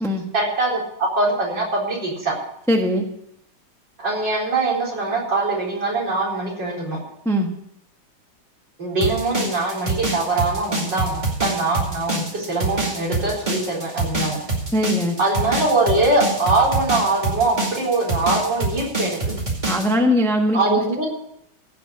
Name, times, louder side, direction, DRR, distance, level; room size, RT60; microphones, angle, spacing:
voice 1, 0.3-2.3 4.0-7.0 8.8-14.4 15.2-19.2 20.5-21.0, right 2 dB, 60° right, -4 dB, 5.0 m, -22 dB
voice 2, 2.7-3.0 7.2-7.5 14.7-15.2 19.7-21.0, equal, ahead, 3 dB, 0.9 m, -20 dB
sound 1, 9.0-19.9, right 2 dB, 20° right, 2.4 m, -25 dB
16.0 x 6.0 x 8.5 m, 0.78 s
omnidirectional pair, 2.2 m